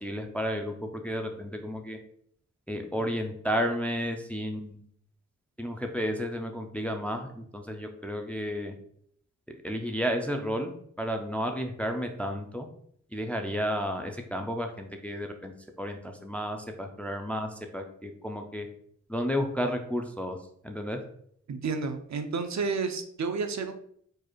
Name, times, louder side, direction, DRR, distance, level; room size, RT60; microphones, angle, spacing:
voice 1, 0.0-2.0 2.7-4.8 5.6-8.7 9.5-12.7 13.1-18.7 19.1-20.4 20.6-21.0, equal, 5° left, 4 dB, 0.4 m, -32 dB
voice 2, 21.5-23.7, right 4 dB, 65° right, 7 dB, 0.5 m, -31 dB
4.7 x 2.5 x 4.4 m, 0.66 s
wide cardioid pair, 160°, 31 cm